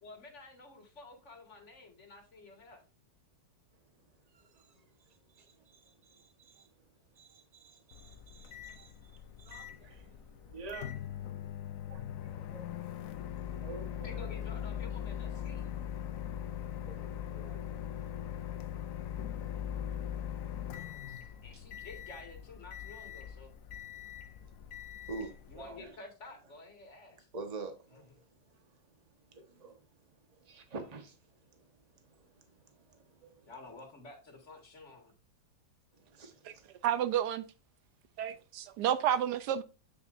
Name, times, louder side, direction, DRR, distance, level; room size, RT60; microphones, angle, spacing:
voice 1, 0.0-2.8 14.0-15.6 21.4-23.5 25.5-27.3 33.4-35.1, left 3 dB, 40° left, 2.1 m, -51 dB
voice 2, 3.8-6.8 7.1-12.6 13.4-14.3 15.3-15.7 16.1-17.7 18.0-18.1 20.5-20.6 21.0-21.6 24.8-26.0 27.3-33.5 35.9-36.7, right 3 dB, 25° right, 1.2 m, -50 dB
Microwave oven, 7.9-25.9, left 10 dB, 65° left, 0.9 m, -41 dB
voice 3, 36.8-37.5 38.2-39.6, right 10 dB, 75° right, 1.1 m, -30 dB
7.9 x 7.0 x 2.6 m
omnidirectional pair, 1.9 m